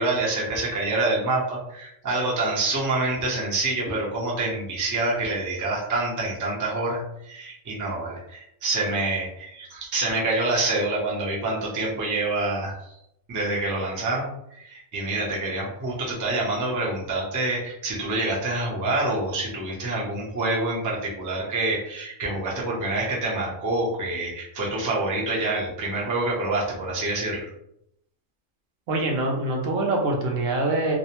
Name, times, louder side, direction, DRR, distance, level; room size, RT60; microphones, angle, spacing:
voice 1, 0.0-12.8 13.3-14.3 14.6-27.5, right 2 dB, 25° right, -4 dB, 0.4 m, -27 dB
voice 2, 28.9-31.0, right 2 dB, 75° right, 1 dB, 1.0 m, -24 dB
2.6 x 2.0 x 2.8 m, 0.77 s
omnidirectional pair, 1.3 m